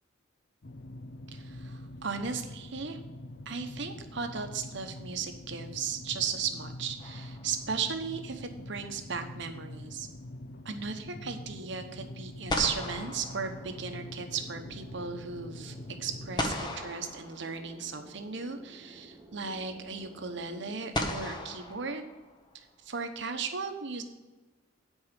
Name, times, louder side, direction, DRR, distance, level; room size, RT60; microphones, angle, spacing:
sound 1, 0.6-16.5, left 1 dB, 60° left, 0.6 m, -45 dB
voice 1, 1.3-3.0 3.5-10.1 10.6-22.1 22.5-24.0, right 5 dB, 65° right, 6 dB, 1.0 m, -36 dB
sound 2, 7.0-7.9 12.0-12.1 12.5-14.2 16.4-18.0 19.3-19.4 20.9-22.6, left 1 dB, 25° left, 1.0 m, -36 dB
sound 3, 13.5-21.2, equal, 15° right, 1.3 m, -53 dB
9.8 x 4.7 x 6.8 m, 1.2 s
head